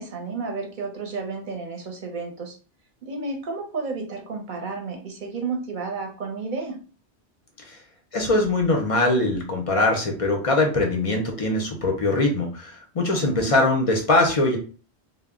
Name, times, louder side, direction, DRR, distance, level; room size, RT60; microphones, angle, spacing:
voice 1, 0.0-2.6 3.0-6.8 13.2-13.6, right 4 dB, 50° right, 1 dB, 0.7 m, -32 dB
voice 2, 8.1-14.6, left 2 dB, 50° left, 2 dB, 0.4 m, -22 dB
2.1 x 2.0 x 3.5 m, 0.38 s
omnidirectional pair, 1.1 m